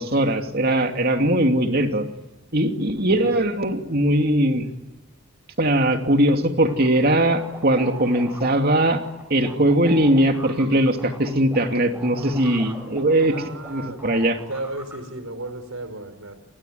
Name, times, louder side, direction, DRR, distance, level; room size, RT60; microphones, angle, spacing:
voice 1, 0.0-2.1 2.5-4.7 5.6-9.0 9.3-13.4 13.7-14.4, right 1 dB, 45° right, 5 dB, 2.7 m, -20 dB
voice 2, 2.9-3.4 13.3-14.0 14.5-16.3, right 2 dB, 70° right, 11 dB, 5.0 m, -34 dB
sound 1, 6.7-13.7 14.0-15.0, right 1 dB, 10° right, 5.8 m, -40 dB
27.5 x 20.5 x 9.4 m, 0.96 s
head